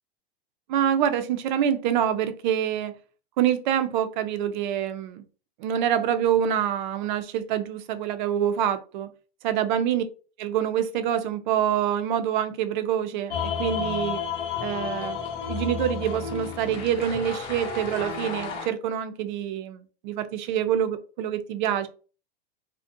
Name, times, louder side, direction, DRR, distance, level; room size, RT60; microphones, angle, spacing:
voice 1, 0.7-2.9 3.4-5.2 5.6-9.1 9.4-10.0 10.4-14.2 14.6-15.2 15.5-21.9, right 9 dB, 55° right, 0.4 m, -26 dB
sound 1, 13.3-18.7, left 6 dB, 50° left, 0.7 m, -32 dB
2.4 x 2.1 x 2.5 m
hypercardioid pair, 135°, 30 cm